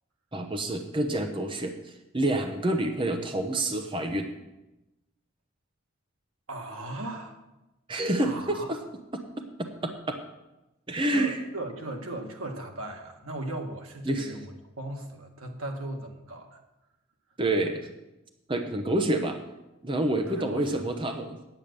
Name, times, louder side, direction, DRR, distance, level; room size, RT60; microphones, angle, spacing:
voice 1, 0.3-4.3 7.9-8.8 9.8-10.2 10.9-11.4 14.1-14.3 17.4-17.9 18.5-19.4 19.8-21.4, right 1 dB, 25° right, 5 dB, 0.8 m, -28 dB
voice 2, 6.5-7.4 8.2-8.7 11.1-14.5 14.8-16.6 20.3-20.8, right 1 dB, 90° right, 3 dB, 1.7 m, -37 dB
9.0 x 8.8 x 6.7 m, 0.99 s
head